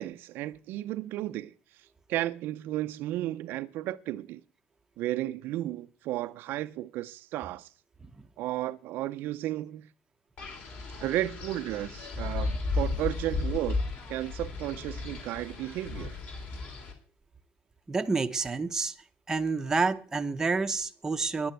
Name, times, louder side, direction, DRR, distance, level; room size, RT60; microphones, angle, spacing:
voice 1, 0.0-4.4 5.0-7.7 8.4-9.9 11.0-13.8 14.1-16.2, right 14 dB, 55° right, 0.6 m, -33 dB
Wind, 10.4-16.9, left 3 dB, 45° left, 3.5 m, -34 dB
voice 2, 17.9-18.9 19.3-21.5, right 4 dB, 15° right, 0.8 m, -28 dB
10.5 x 9.4 x 9.0 m
cardioid pair, 160°, 4 cm